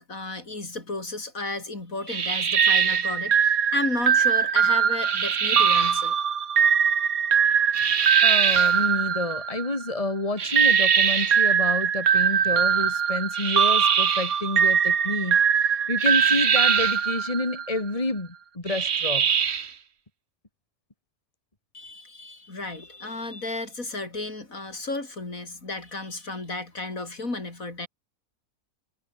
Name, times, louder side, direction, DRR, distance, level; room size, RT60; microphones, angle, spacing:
voice 1, 0.0-6.2 21.7-27.9, left 2 dB, 60° left, 5.0 m, -33 dB
sound 1, 2.1-3.1 5.0-6.0 7.7-8.8 10.4-11.5 13.3-14.4 16.0-17.0 18.7-19.7, right 7 dB, 45° right, 1.3 m, -24 dB
sound 2, 2.6-10.0 10.6-17.8, right 7 dB, 65° right, 1.9 m, -22 dB
voice 2, 8.2-19.3, left 2 dB, 20° left, 3.0 m, -29 dB
omnidirectional pair, 1.6 m